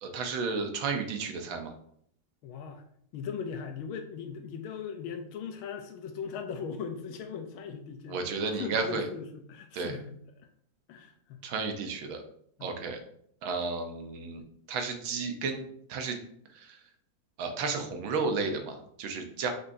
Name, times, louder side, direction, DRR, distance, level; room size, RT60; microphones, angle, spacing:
voice 1, 0.0-1.7 8.1-9.1 9.7-10.0 11.4-12.2 12.6-13.0 13.4-14.4 14.7-15.6 15.9-16.2 17.4-19.5, right 4 dB, 80° right, 5 dB, 1.7 m, -32 dB
voice 2, 2.4-2.8 3.1-10.2 10.9-11.4 12.6-12.7, left 6 dB, 90° left, 5 dB, 1.5 m, -39 dB
6.7 x 5.3 x 2.7 m, 0.67 s
omnidirectional pair, 2.2 m